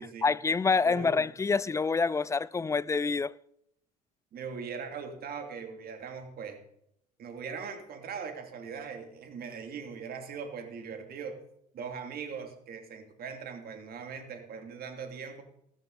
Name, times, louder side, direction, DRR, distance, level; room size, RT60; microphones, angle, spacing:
voice 1, 0.2-3.4, left 4 dB, 15° left, 0.4 m, -27 dB
voice 2, 0.8-1.3 4.3-6.6 7.2-11.4 11.7-15.4, right 6 dB, 45° right, 2.8 m, -40 dB
15.5 x 13.5 x 4.1 m
hypercardioid pair, 65°, 21 cm